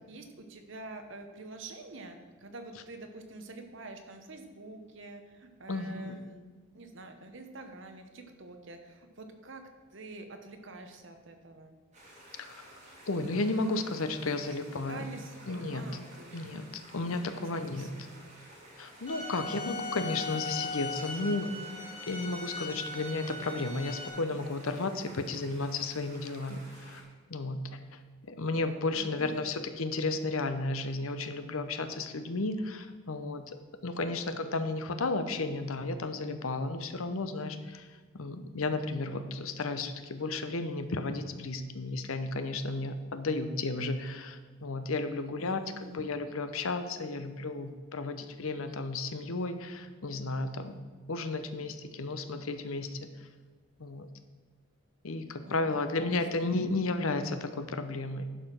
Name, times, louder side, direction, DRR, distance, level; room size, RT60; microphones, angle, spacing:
voice 1, 0.1-6.4 6.7-11.8 14.4-14.6 14.9-16.4 17.3-18.2 19.6-20.1 28.9-29.5 45.4-46.1 55.4-56.5, right 2 dB, 55° right, 6 dB, 1.0 m, -47 dB
voice 2, 5.7-6.2 12.4-12.8 13.1-15.1 15.5-15.9 16.3-17.9 18.8-21.5 22.1-27.0 27.3-28.0 28.3-50.8 51.1-53.0 53.8-54.1 55.0-58.3, left 3 dB, 70° left, 9 dB, 0.8 m, -33 dB
sound 1, 11.9-27.0, right 1 dB, 30° right, 2.6 m, -53 dB
sound 2, 19.1-24.1, left 3 dB, 25° left, 2.2 m, -39 dB
11.0 x 5.0 x 6.0 m, 1.5 s
head